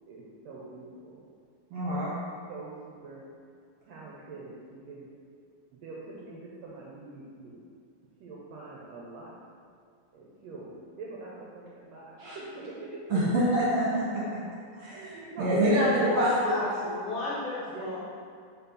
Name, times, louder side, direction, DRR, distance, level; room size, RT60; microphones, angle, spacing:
voice 1, 0.1-1.2 1.8-2.0 2.5-3.2 3.9-5.1 5.7-7.6 8.2-9.3 10.1-13.0 14.2-14.3 14.9-15.9 17.7-18.0, right 3 dB, 75° right, -5 dB, 1.7 m, -43 dB
voice 2, 1.7-2.1 12.2-12.4 13.1-14.2 14.8-16.5, equal, 55° right, -7 dB, 1.7 m, -26 dB
voice 3, 15.8-18.0, left 2 dB, 80° left, -7 dB, 1.2 m, -33 dB
4.3 x 4.3 x 5.4 m, 2.3 s
omnidirectional pair, 3.7 m